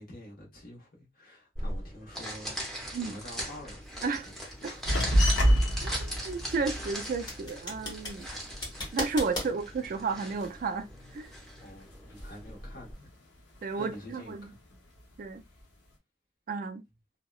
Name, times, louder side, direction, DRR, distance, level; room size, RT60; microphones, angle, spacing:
voice 1, 0.0-3.9 4.1-5.1 9.4-9.5 11.6-13.1 13.8-14.6 15.5-15.6, left 1 dB, 50° left, 1.0 m, -48 dB
sound 1, 1.6-12.9, equal, ahead, 0.6 m, -40 dB
sound 2, 3.9-9.5, left 1 dB, 25° left, 1.0 m, -39 dB
sound 3, 4.9-9.8 10.1-11.5 11.8-12.6 12.9-14.3 14.7-15.4, equal, 75° left, 0.8 m, -29 dB
voice 2, 5.8-8.3 8.9-11.3 13.6-14.5 15.2-15.4 16.5-16.8, right 4 dB, 50° right, 0.3 m, -33 dB
2.7 x 2.1 x 2.3 m
head